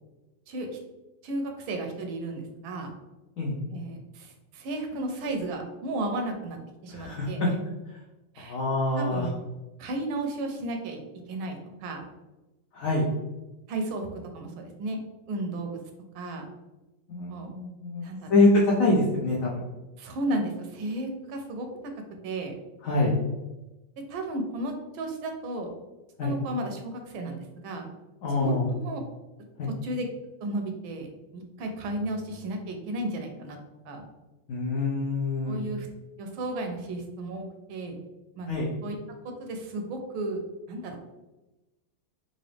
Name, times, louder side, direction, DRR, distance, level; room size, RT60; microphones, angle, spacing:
voice 1, 0.5-0.8 1.2-2.9 3.7-6.6 6.8-7.5 8.3-8.6 9.0-9.4 9.8-11.0 11.3-12.0 13.7-15.0 15.3-15.8 16.1-16.5 17.3-17.6 18.0-18.4 20.0-21.7 22.2-22.5 24.1-25.7 26.2-27.4 27.6-27.9 28.4-29.0 29.6-30.0 30.4-33.6 33.8-34.1 35.5-35.9 36.2-38.0 38.4-38.5 38.8-39.0 39.2-40.4 40.7-41.1, right 2 dB, 80° right, 4 dB, 1.4 m, -33 dB
voice 2, 6.9-7.5 8.4-9.3 12.7-13.1 17.1-18.0 18.3-19.6 22.8-23.1 26.2-26.4 28.2-28.6 29.6-29.7 34.5-35.6 38.5-38.7, left 2 dB, 80° left, -3 dB, 0.7 m, -25 dB
3.9 x 2.6 x 3.2 m, 1.1 s
omnidirectional pair, 2.2 m